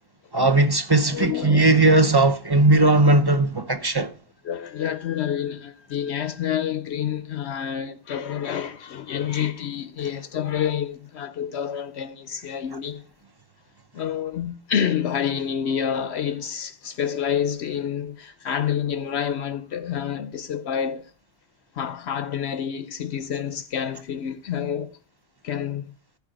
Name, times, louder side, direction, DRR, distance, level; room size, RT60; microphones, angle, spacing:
voice 1, 0.3-4.1, right 2 dB, 25° right, 0.7 m, -18 dB
voice 2, 1.1-1.9 4.4-13.0 13.9-21.1 21.7-25.0 25.4-25.9, left 8 dB, 70° left, 0.9 m, -28 dB
14.0 x 5.2 x 5.0 m
omnidirectional pair, 1.2 m